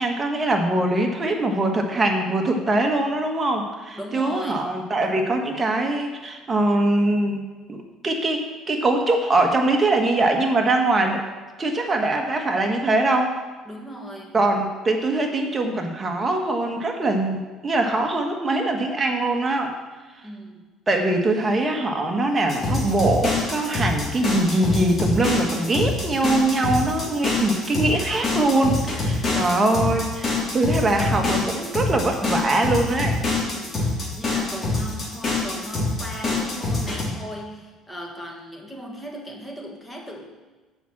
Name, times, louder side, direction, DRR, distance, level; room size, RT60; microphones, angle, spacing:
voice 1, 0.0-11.2 11.6-13.3 14.3-19.7 20.9-33.1, right 2 dB, 25° right, 3 dB, 1.3 m, -22 dB
voice 2, 3.9-4.7 13.7-14.3 20.2-20.6 33.4-33.8 34.1-40.3, equal, 10° left, 0 dB, 1.7 m, -37 dB
sound 1, 22.5-37.0, left 3 dB, 25° left, 3.3 m, -25 dB
7.1 x 5.9 x 7.3 m, 1.3 s
cardioid pair, 120°, 0 cm